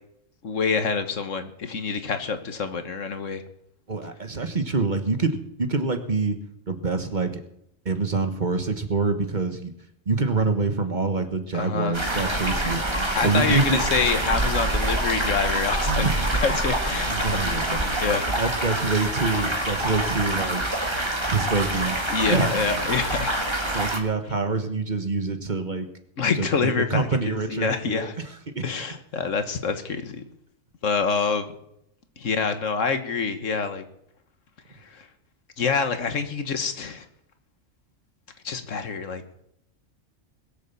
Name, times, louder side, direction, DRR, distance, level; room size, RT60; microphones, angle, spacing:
voice 1, 0.4-3.4 11.5-12.0 13.1-16.0 16.4-18.3 22.1-23.4 26.2-28.1 28.6-30.2 30.8-31.5 32.2-33.8 34.8-35.1 35.6-37.0 38.4-39.2, left 5 dB, 75° left, 9 dB, 1.6 m, -26 dB
voice 2, 3.9-6.4 6.7-7.4 7.8-9.7 10.1-12.8 13.2-13.8 15.8-16.2 16.5-16.6 17.1-20.6 21.3-22.0 22.3-22.5 23.7-25.9 26.3-28.8, right 3 dB, 35° right, 7 dB, 1.3 m, -26 dB
sound 1, 11.9-24.0, right 1 dB, 20° right, 1.6 m, -26 dB
21.0 x 7.1 x 7.0 m, 0.75 s
omnidirectional pair, 1.3 m